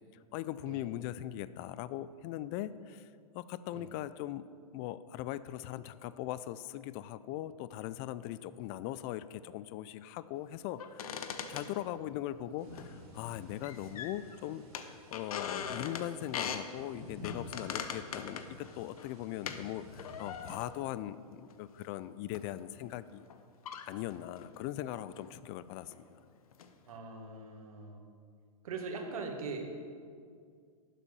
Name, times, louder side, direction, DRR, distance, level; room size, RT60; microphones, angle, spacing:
voice 1, 0.3-4.5 4.7-11.1 11.5-23.3 23.9-25.9, left 13 dB, 40° left, 16 dB, 0.4 m, -40 dB
sound 1, 10.8-12.2 12.7-13.3 13.6-14.4 14.7-16.7 17.2-19.6 20.0-20.8 21.5-21.7 22.3-22.5 23.3-23.4 23.6-24.6 25.2-25.3 25.7-26.2 26.5-27.0, left 7 dB, 70° left, 0.9 m, -41 dB
sound 2, 12.6-20.5, left 2 dB, 85° right, 3.2 m, -51 dB
voice 2, 26.9-28.0 28.6-29.8, right 4 dB, 70° right, 3 dB, 1.8 m, -41 dB
11.0 x 7.3 x 5.5 m, 2.2 s
hypercardioid pair, 115°, 19 cm